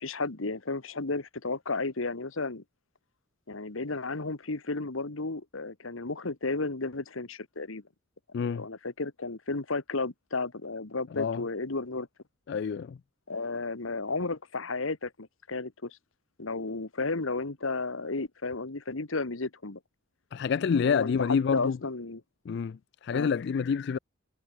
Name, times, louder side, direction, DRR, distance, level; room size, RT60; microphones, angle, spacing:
voice 1, 0.0-2.6 3.5-7.8 8.4-12.1 13.3-16.0 16.4-19.8 20.7-22.2 23.1-23.3, left 3 dB, 85° left, 1.6 m, -33 dB
voice 2, 12.5-13.0 20.3-21.8 22.5-24.0, left 6 dB, 55° left, 0.3 m, -28 dB
head